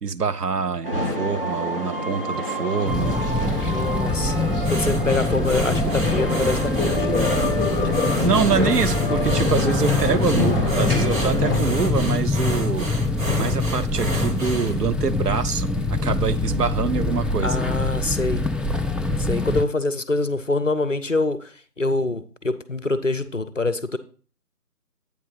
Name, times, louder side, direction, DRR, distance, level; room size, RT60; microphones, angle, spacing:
voice 1, 0.0-3.2 7.8-7.9 8.2-12.9 13.4-17.6, right 6 dB, 70° right, 13 dB, 0.7 m, -25 dB
sound 1, 0.8-11.6, left 1 dB, 35° right, 0.7 m, -27 dB
sound 2, 2.9-19.6, left 3 dB, ahead, 0.4 m, -24 dB
voice 2, 3.7-7.1 17.4-18.4 19.2-21.5 21.8-24.0, left 2 dB, 50° left, 13 dB, 0.5 m, -25 dB
sound 3, 4.6-14.8, right 1 dB, 55° right, 1.3 m, -32 dB
8.5 x 3.7 x 5.7 m, 0.41 s
figure-of-eight pair, 175°, 48 cm